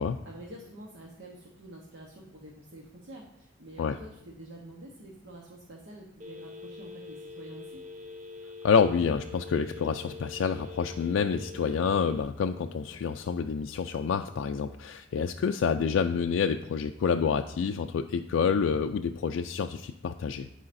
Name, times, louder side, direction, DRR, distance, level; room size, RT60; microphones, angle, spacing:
voice 1, 0.0-7.8, right 1 dB, 65° right, -1 dB, 1.0 m, -48 dB
Telephone, 6.2-12.2, left 3 dB, 40° right, 0.7 m, -44 dB
voice 2, 8.6-20.5, left 6 dB, 85° left, 5 dB, 0.3 m, -28 dB
13.5 x 4.9 x 2.6 m, 0.89 s
head